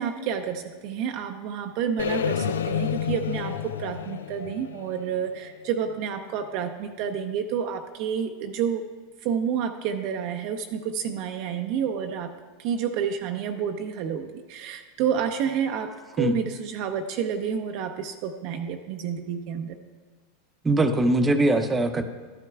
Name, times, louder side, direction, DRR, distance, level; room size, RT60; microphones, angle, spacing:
voice 1, 0.0-8.8 9.2-12.3 12.6-19.8, right 7 dB, 55° right, 4 dB, 0.6 m, -29 dB
sound 1, 2.0-6.0, left 8 dB, 85° left, 0.3 m, -30 dB
voice 2, 20.6-22.0, right 2 dB, 15° right, 7 dB, 0.7 m, -21 dB
12.5 x 9.1 x 2.3 m, 1.5 s
hypercardioid pair, 100°, 0 cm